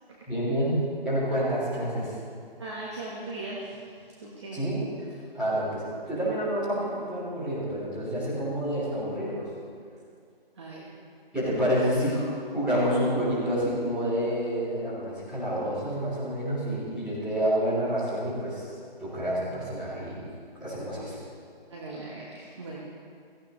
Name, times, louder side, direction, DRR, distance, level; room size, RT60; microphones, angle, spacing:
voice 1, 0.3-2.2 4.5-4.8 5.3-9.5 11.3-12.3 12.5-18.7 19.0-20.2 20.5-21.2, equal, 5° right, -13 dB, 3.6 m, -28 dB
voice 2, 2.6-4.6 10.5-10.9 21.7-22.8, right 2 dB, 30° right, -5 dB, 1.5 m, -39 dB
17.5 x 14.5 x 3.2 m, 2.3 s
figure-of-eight pair, 155°, 30 cm